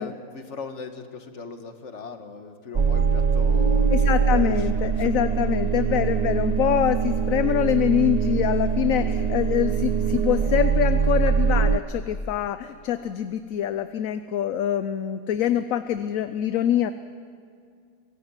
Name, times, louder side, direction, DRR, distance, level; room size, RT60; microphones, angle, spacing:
voice 1, 0.0-5.1 8.9-9.3 15.4-15.6, left 4 dB, 55° left, 7 dB, 1.8 m, -39 dB
sound 1, 2.7-11.8, right 6 dB, 40° right, 0.6 m, -22 dB
voice 2, 3.9-16.9, left 10 dB, 70° left, 11 dB, 1.1 m, -25 dB
24.5 x 16.5 x 9.0 m, 2.4 s
omnidirectional pair, 1.5 m